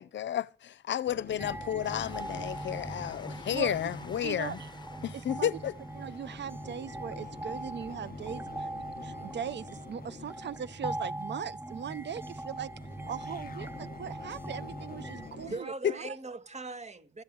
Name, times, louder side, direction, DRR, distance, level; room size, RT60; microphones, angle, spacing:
voice 1, 0.0-4.6 5.0-5.7 15.8-15.9, left 10 dB, 70° left, 0.6 m, -32 dB
sound 1, 1.1-15.6, left 6 dB, 50° left, 1.3 m, -49 dB
sound 2, 1.4-15.3, right 1 dB, 10° right, 0.6 m, -41 dB
Train, 1.8-13.0 13.7-13.8 14.1-14.2, left 3 dB, 20° left, 1.1 m, -55 dB
voice 2, 4.2-4.6 5.4-5.5 6.0-8.7 9.0-12.7 13.1-16.2, right 8 dB, 65° right, 0.6 m, -39 dB
voice 3, 15.2-17.2, right 3 dB, 35° right, 1.6 m, -40 dB
15.0 x 6.9 x 7.9 m
supercardioid pair, 50°, 20 cm